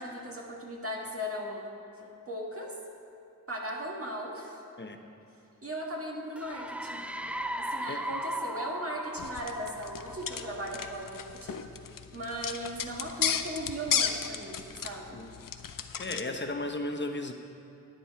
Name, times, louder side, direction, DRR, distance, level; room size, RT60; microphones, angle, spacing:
voice 1, 0.0-1.7 2.0-2.8 3.5-4.6 5.6-7.1 7.6-11.6 12.1-15.2, equal, 40° right, -1 dB, 1.8 m, -38 dB
sound 1, 6.4-10.9, right 1 dB, 5° right, 0.4 m, -37 dB
sound 2, 9.2-16.3, left 8 dB, 70° left, 0.6 m, -34 dB
voice 2, 16.0-17.3, left 2 dB, 35° left, 5 dB, 1.0 m, -34 dB
10.0 x 9.5 x 4.7 m, 2.9 s
cardioid pair, 50°, 34 cm